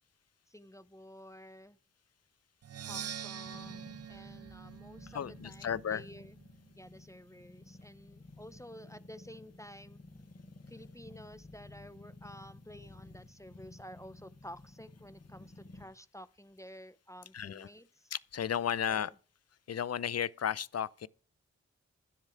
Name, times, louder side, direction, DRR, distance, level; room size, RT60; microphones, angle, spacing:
voice 1, 0.5-1.8 2.8-6.4 6.8-10.0 10.7-18.1 18.9-19.2, equal, 10° left, 0.7 m, -51 dB
Percussion, 2.6-6.4, right 9 dB, 55° right, 0.5 m, -45 dB
sound 1, 3.4-15.8, left 2 dB, 35° left, 3.3 m, -53 dB
voice 2, 5.1-6.1 17.3-17.7 18.1-19.1 19.7-21.1, left 8 dB, 55° left, 0.6 m, -34 dB
13.0 x 10.5 x 3.6 m
cardioid pair, 45°, 30 cm